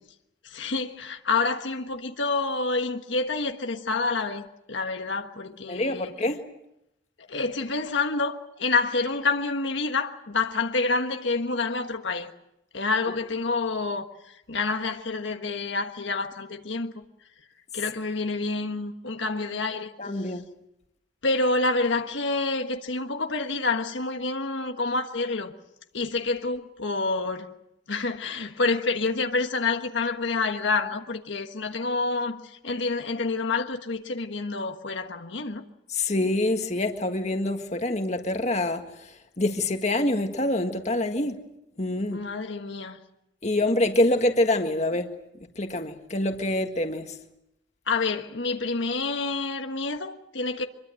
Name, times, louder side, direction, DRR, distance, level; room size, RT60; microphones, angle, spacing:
voice 1, 0.4-6.1 7.3-12.3 12.7-14.1 14.5-17.0 17.7-19.9 20.2-20.3 21.2-25.5 25.9-27.5 27.9-35.6 42.1-43.0 47.9-50.6, left 3 dB, 75° left, 1.4 m, -28 dB
voice 2, 5.7-6.4 20.0-20.4 35.9-38.8 39.4-41.4 41.8-42.2 43.4-45.1 45.6-47.1, left 1 dB, 35° left, 1.7 m, -25 dB
25.0 x 22.5 x 7.7 m
head